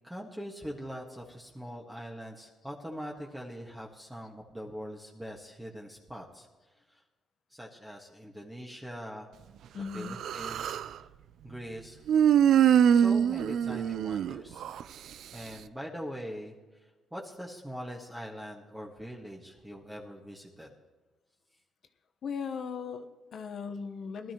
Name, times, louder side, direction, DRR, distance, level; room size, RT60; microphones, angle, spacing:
voice 1, 0.0-6.5 6.9-7.0 7.5-9.3 9.9-10.8 11.4-12.0 12.9-14.7 15.3-16.5 16.8-20.7, equal, 5° right, -2 dB, 1.6 m, -42 dB
voice 2, 9.7-10.2 22.2-24.3, left 6 dB, 60° left, 8 dB, 1.0 m, -38 dB
Human voice, 10.0-10.9 12.1-14.8, right 9 dB, 70° right, 0.4 m, -24 dB
19.5 x 12.5 x 3.0 m, 1.3 s
cardioid pair, 90°, 0 cm